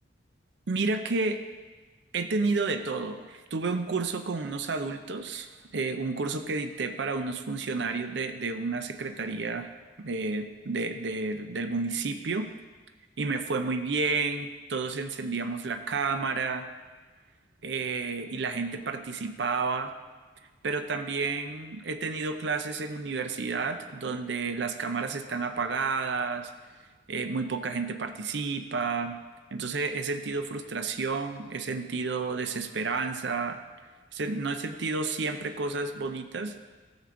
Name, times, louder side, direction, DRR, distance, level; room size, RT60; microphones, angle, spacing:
voice 1, 0.7-1.4 2.1-9.7 10.0-12.5 13.2-16.7 17.6-19.9 20.6-26.5 27.1-29.2 29.5-33.6 34.1-36.6, right 4 dB, 70° right, 8 dB, 0.6 m, -31 dB
12.5 x 7.2 x 3.7 m, 1.4 s
head